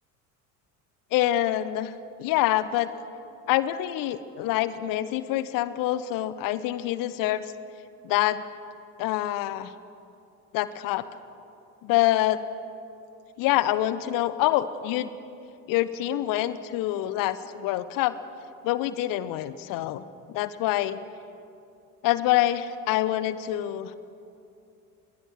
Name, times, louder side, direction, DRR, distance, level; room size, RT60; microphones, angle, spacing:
voice 1, 1.1-1.9 2.2-2.9 3.5-7.5 8.0-8.4 9.0-9.7 10.5-11.1 11.8-12.4 13.4-15.1 15.7-18.2 18.6-20.0 20.3-21.0 22.0-24.0, left 14 dB, 45° left, 15 dB, 1.1 m, -26 dB
26.5 x 21.5 x 6.4 m, 2.7 s
figure-of-eight pair, 65°, 45 cm